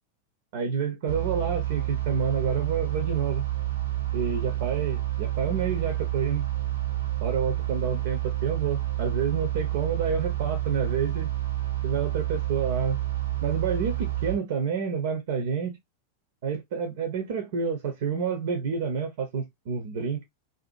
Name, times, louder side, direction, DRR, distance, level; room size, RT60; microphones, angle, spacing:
voice 1, 0.5-3.4 4.1-6.4 7.2-11.3 11.8-13.0 13.4-15.8 16.4-20.2, right 6 dB, 55° right, 0.6 m, -29 dB
sound 1, 1.1-14.4, right 14 dB, 80° right, 0.9 m, -29 dB
2.6 x 2.5 x 2.5 m
figure-of-eight pair, 90°, 0 cm